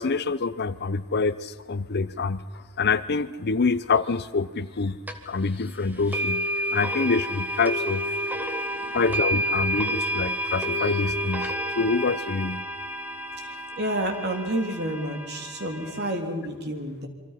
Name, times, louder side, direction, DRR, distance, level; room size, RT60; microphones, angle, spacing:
voice 1, 0.0-5.0 5.3-6.5 6.7-8.1 8.9-12.7, left 4 dB, 50° left, 15 dB, 0.7 m, -26 dB
sound 1, 5.1-5.2 6.1-16.2, equal, 10° right, 1.7 m, -30 dB
voice 2, 13.8-17.1, right 1 dB, 50° right, 4 dB, 3.3 m, -29 dB
27.5 x 24.0 x 5.8 m, 1.4 s
head